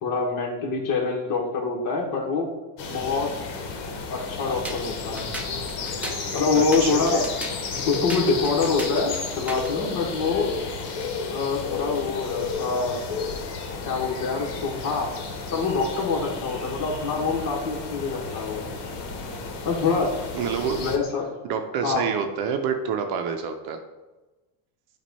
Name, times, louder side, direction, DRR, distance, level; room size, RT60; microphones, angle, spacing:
voice 1, 0.0-2.5 2.9-3.3 4.1-5.3 6.3-7.2 7.7-10.5 11.3-13.0 13.8-15.1 15.5-18.7 19.6-20.1 20.8-21.4 21.8-22.1, left 4 dB, 50° left, -2 dB, 1.6 m, -25 dB
sound 1, 2.8-21.0, left 4 dB, 70° left, 1.3 m, -32 dB
sound 2, 4.6-9.8, equal, 5° right, 0.7 m, -36 dB
voice 2, 6.6-7.2 10.2-10.3 16.1-16.2 20.3-20.9 21.4-23.8, right 6 dB, 55° right, 5 dB, 0.8 m, -28 dB
7.4 x 2.5 x 5.4 m, 1.1 s
supercardioid pair, 115°, 44 cm